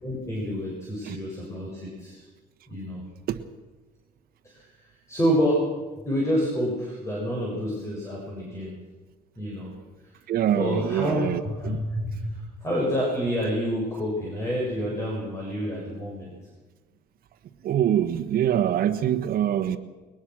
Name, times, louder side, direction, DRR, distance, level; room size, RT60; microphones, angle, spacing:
voice 1, 0.0-2.2 2.7-3.0 4.4-4.7 5.1-5.6 6.0-8.8 9.4-9.7 10.5-16.4, equal, 15° left, -3 dB, 7.3 m, -28 dB
voice 2, 10.3-11.8 17.6-19.8, right 10 dB, 60° right, 6 dB, 1.4 m, -24 dB
22.0 x 19.5 x 6.4 m, 1.3 s
cardioid pair, 110°, 17 cm